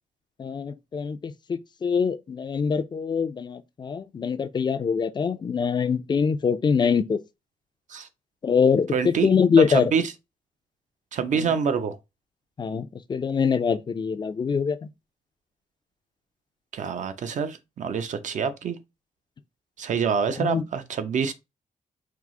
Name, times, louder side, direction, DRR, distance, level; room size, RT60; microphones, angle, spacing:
voice 1, 0.4-7.2 8.4-9.9 11.3-11.5 12.6-14.9 20.4-20.6, left 6 dB, 35° left, 0.4 m, -24 dB
voice 2, 8.9-9.3 9.7-10.1 11.1-12.0 16.7-18.8 19.8-21.3, right 6 dB, 65° right, 0.6 m, -26 dB
4.6 x 2.0 x 3.6 m
cardioid pair, 115°, 14 cm